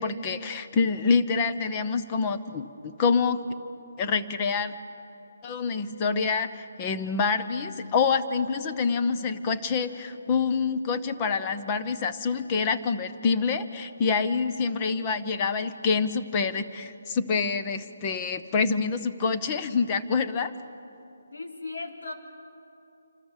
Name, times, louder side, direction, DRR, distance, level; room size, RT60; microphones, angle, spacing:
voice 1, 0.0-3.4 4.0-4.8 5.4-20.5, left 5 dB, 15° left, 9 dB, 0.8 m, -26 dB
voice 2, 21.3-22.1, left 3 dB, 80° left, 2 dB, 4.0 m, -36 dB
27.5 x 26.0 x 7.4 m, 2.8 s
hypercardioid pair, 175°, 0 cm